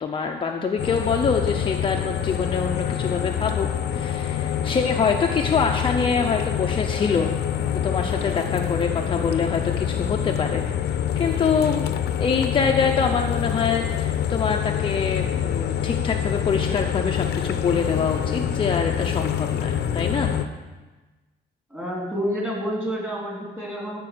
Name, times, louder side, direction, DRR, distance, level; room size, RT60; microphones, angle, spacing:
voice 1, 0.0-7.3 7.8-10.6 11.2-11.9 12.2-20.3, left 5 dB, 30° left, 2 dB, 0.7 m, -25 dB
sound 1, 0.8-20.5, left 9 dB, 80° left, 0.8 m, -26 dB
voice 2, 21.7-24.0, equal, 10° right, -4 dB, 3.6 m, -28 dB
13.5 x 5.4 x 7.8 m, 1.2 s
cardioid pair, 160°, 17 cm